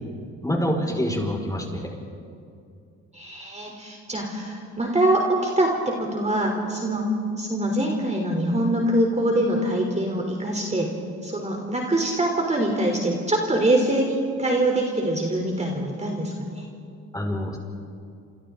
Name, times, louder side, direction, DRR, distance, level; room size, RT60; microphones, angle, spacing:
voice 1, 0.4-1.9 17.1-17.6, equal, 10° left, 0 dB, 5.5 m, -26 dB
voice 2, 3.1-7.0 7.4-10.9 11.2-16.7, right 1 dB, 20° right, 1 dB, 3.6 m, -24 dB
29.0 x 26.5 x 3.9 m, 2.4 s
supercardioid pair, 65°, 34 cm